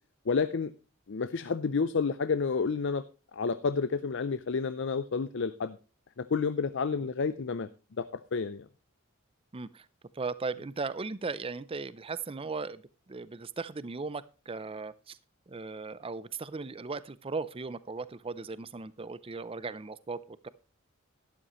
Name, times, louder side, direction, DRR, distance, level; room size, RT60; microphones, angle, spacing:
voice 1, 0.3-0.7 1.1-3.0 3.3-5.8 6.2-7.7 8.0-8.7, left 5 dB, 60° left, 13 dB, 0.5 m, -30 dB
voice 2, 9.5-9.9 10.1-12.8 13.1-15.2 15.5-20.5, right 4 dB, 25° right, 17 dB, 0.5 m, -37 dB
12.5 x 11.5 x 3.0 m, 0.35 s
head